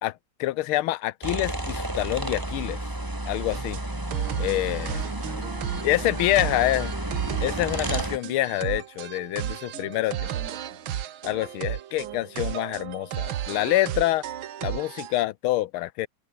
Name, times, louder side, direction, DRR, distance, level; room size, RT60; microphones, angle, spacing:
voice 1, 0.0-2.8 3.3-3.8 4.4-5.0 5.8-6.9 7.4-10.2 11.2-14.2 14.6-16.1, left 16 dB, 90° left, 1.6 m, -26 dB
sound 1, 1.2-8.2, right 1 dB, 10° right, 2.9 m, -32 dB
sound 2, 3.5-15.2, right 11 dB, 75° right, 1.9 m, -34 dB
voice 2, 4.4-6.9 9.7-11.1, right 2 dB, 35° right, 6.1 m, -47 dB
omnidirectional pair, 2.3 m